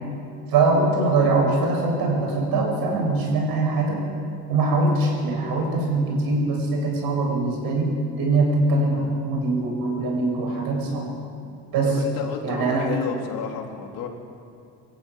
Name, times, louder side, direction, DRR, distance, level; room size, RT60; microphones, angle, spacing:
voice 1, 0.5-4.0 4.5-7.9 8.2-11.1 11.7-11.9 12.4-12.9, right 3 dB, 75° right, 0 dB, 7.7 m, -22 dB
voice 2, 11.8-14.1, left 6 dB, 70° left, 1 dB, 3.7 m, -32 dB
26.0 x 14.5 x 9.6 m, 2.6 s
cardioid pair, 155°, 36 cm